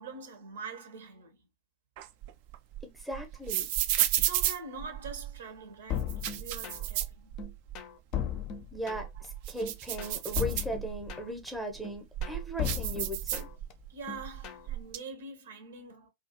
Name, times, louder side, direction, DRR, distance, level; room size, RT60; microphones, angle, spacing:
voice 1, 0.0-1.4 4.2-7.4 9.1-9.3 13.9-16.1, right 4 dB, 65° right, 0.7 m, -44 dB
sound 1, 2.0-5.4 6.0-7.8 8.2-8.3 8.8-11.2 11.7-13.9 14.2-15.0, right 13 dB, 50° right, 0.3 m, -33 dB
voice 2, 2.8-3.7 8.7-9.1 9.5-13.5, equal, 5° right, 0.7 m, -37 dB
sound 2, 5.9-7.0 7.4-9.3 9.6-11.5 11.8-13.7 14.1-14.7, left 9 dB, 40° left, 0.5 m, -36 dB
2.4 x 2.3 x 2.8 m
figure-of-eight pair, 90°, 0 cm